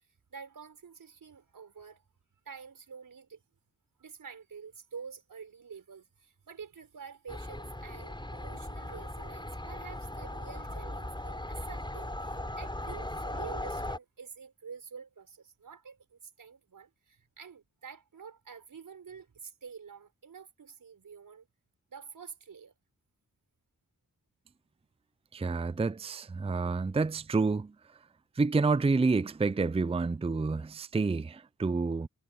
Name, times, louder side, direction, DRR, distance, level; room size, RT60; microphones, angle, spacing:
voice 1, 0.0-2.0 2.5-3.4 4.0-21.5 21.9-22.7, right 6 dB, 90° right, 5.7 m, -48 dB
sound 1, 7.3-14.0, left 1 dB, 15° left, 6.4 m, -38 dB
voice 2, 25.3-27.7 28.4-32.1, right 4 dB, 20° right, 0.5 m, -29 dB
wide cardioid pair, 70°, 32 cm